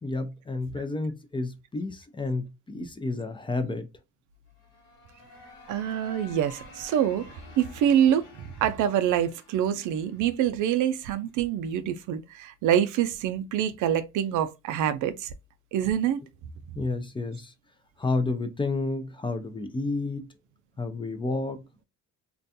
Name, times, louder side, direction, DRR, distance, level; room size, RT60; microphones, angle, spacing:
voice 1, 0.0-3.9 16.8-17.5 18.0-20.3 20.8-21.8, left 3 dB, 15° left, 0.4 m, -30 dB
sound 1, 4.5-11.3, left 3 dB, 80° left, 1.2 m, -51 dB
voice 2, 5.7-7.3 7.6-8.2 8.6-15.3 15.7-16.2, right 10 dB, 80° right, 0.4 m, -25 dB
2.4 x 2.2 x 2.6 m
cardioid pair, 90°, 30 cm